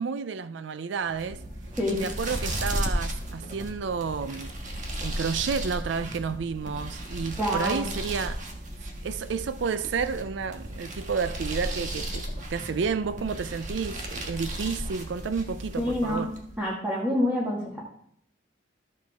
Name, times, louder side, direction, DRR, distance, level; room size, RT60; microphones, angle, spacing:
voice 1, 0.0-1.4 1.9-8.4 9.0-16.3, right 5 dB, 70° right, 0.4 m, -31 dB
sound 1, 1.0-16.5, right 1 dB, 40° right, 1.5 m, -35 dB
voice 2, 7.4-7.9 15.8-16.3 16.6-17.8, left 1 dB, 10° right, 1.8 m, -27 dB
14.0 x 6.4 x 3.5 m
head